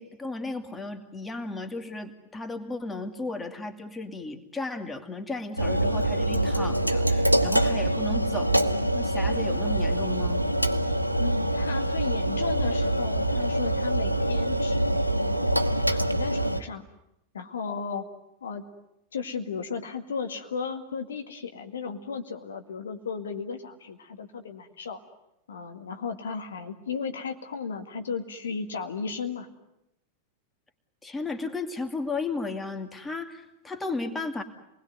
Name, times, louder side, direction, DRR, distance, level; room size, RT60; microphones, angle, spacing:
voice 1, 0.0-8.7 8.9-10.5 31.0-34.4, left 3 dB, 10° left, 6 dB, 2.4 m, -34 dB
sound 1, 5.6-16.6, right 1 dB, 90° right, 1.1 m, -25 dB
voice 2, 11.1-15.4 15.9-16.9 17.3-18.1 18.4-18.6 19.1-25.0 25.5-29.5, left 5 dB, 65° left, 6 dB, 2.0 m, -35 dB
28.0 x 20.5 x 9.4 m, 0.86 s
figure-of-eight pair, 90°, 0 cm